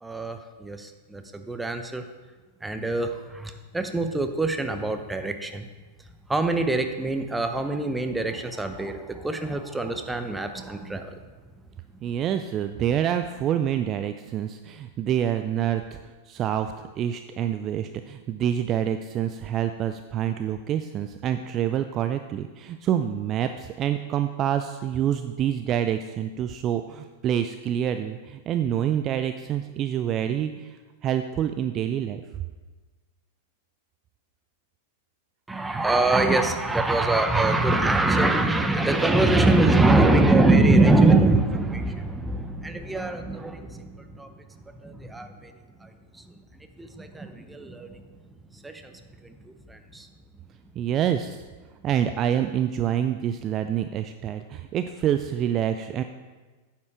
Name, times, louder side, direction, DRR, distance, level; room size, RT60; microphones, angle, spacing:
voice 1, 0.0-2.1 2.6-5.7 6.3-11.2 35.5-44.4 44.8-45.5 45.8-46.4 46.8-48.0 48.5-50.1, right 2 dB, 10° right, 7 dB, 0.8 m, -24 dB
voice 2, 12.0-16.0 16.3-30.8 31.0-32.2 50.8-51.4 51.8-56.0, right 10 dB, 30° right, 9 dB, 0.4 m, -27 dB
9.6 x 7.4 x 4.8 m, 1.3 s
figure-of-eight pair, 95°, 0 cm